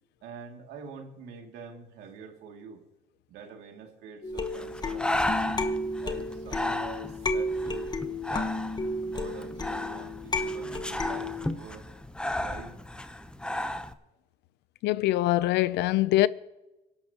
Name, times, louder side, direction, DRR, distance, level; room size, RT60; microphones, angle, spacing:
voice 1, 0.2-2.8 3.3-5.6 6.0-8.6 9.0-11.9 12.4-12.8, right 6 dB, 85° right, 2.6 m, -45 dB
sound 1, 4.2-11.5, left 2 dB, 25° left, 1.1 m, -32 dB
Breathing, 4.4-13.9, left 1 dB, 5° left, 0.8 m, -34 dB
voice 2, 14.8-16.3, left 16 dB, 80° left, 0.6 m, -23 dB
25.0 x 11.5 x 3.0 m
cardioid pair, 110°, 17 cm